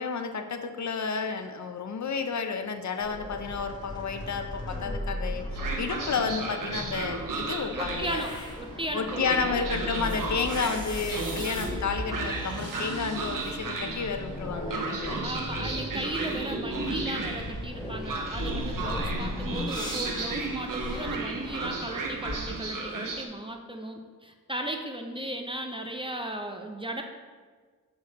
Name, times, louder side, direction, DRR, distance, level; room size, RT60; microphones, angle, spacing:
voice 1, 0.0-5.4 5.8-8.2 8.9-15.2, left 5 dB, 50° left, 7 dB, 0.5 m, -31 dB
sound 1, 3.0-22.4, left 1 dB, 10° left, 1.2 m, -37 dB
Train, 5.5-23.3, right 3 dB, 60° right, 0.8 m, -35 dB
voice 2, 7.7-9.7 15.2-27.0, right 1 dB, 15° right, 3 dB, 0.5 m, -36 dB
6.5 x 4.7 x 4.1 m, 1.5 s
wide cardioid pair, 105°, 36 cm